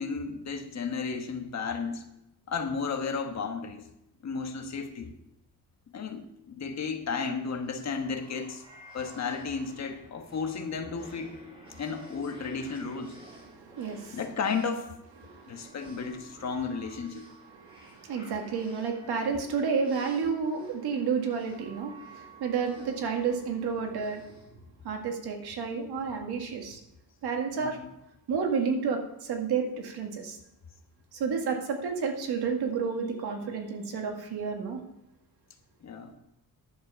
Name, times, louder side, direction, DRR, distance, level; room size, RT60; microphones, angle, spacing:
voice 1, 0.0-2.0 2.5-3.9 4.2-5.1 5.9-8.6 8.9-11.4 11.8-13.2 14.1-14.9 15.5-17.3 27.5-27.9 35.8-36.1, left 5 dB, 45° left, 5 dB, 1.3 m, -33 dB
sound 1, 7.6-25.3, right 2 dB, 15° right, 3.9 m, -52 dB
voice 2, 13.5-14.2 15.2-15.7 17.6-24.3 24.8-26.8 27.2-27.8 28.3-30.4 31.1-34.8, right 5 dB, 85° right, 3 dB, 2.0 m, -31 dB
11.0 x 7.5 x 5.7 m, 0.85 s
wide cardioid pair, 165°, 37 cm